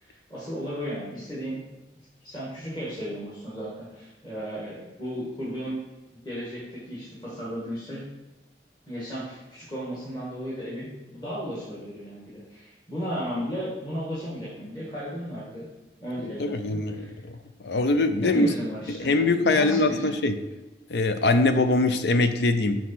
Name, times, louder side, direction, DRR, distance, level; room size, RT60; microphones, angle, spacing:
voice 1, 0.0-1.6 2.2-5.8 6.2-8.0 8.9-15.7 16.0-17.1 18.2-19.1 19.4-20.1, equal, 25° left, -8 dB, 1.5 m, -34 dB
voice 2, 16.4-17.4 17.6-18.5 18.9-20.4 20.9-22.8, left 2 dB, 75° left, 9 dB, 0.5 m, -23 dB
6.3 x 4.1 x 4.3 m, 1.1 s
head